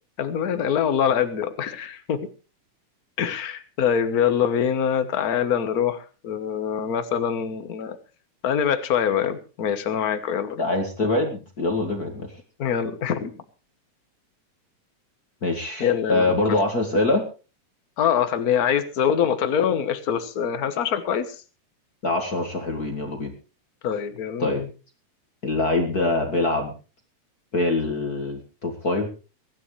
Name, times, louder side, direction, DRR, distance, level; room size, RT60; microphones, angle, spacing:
voice 1, 0.2-2.3 3.2-8.0 8.4-10.6 12.6-13.3 15.8-16.3 18.0-21.4 23.8-24.7, left 8 dB, 50° left, 10 dB, 1.1 m, -24 dB
voice 2, 10.6-12.4 15.4-17.2 22.0-23.3 24.4-24.6 25.4-26.7 27.5-29.1, left 2 dB, 35° left, 4 dB, 2.2 m, -24 dB
23.5 x 11.5 x 3.3 m, 0.34 s
omnidirectional pair, 3.4 m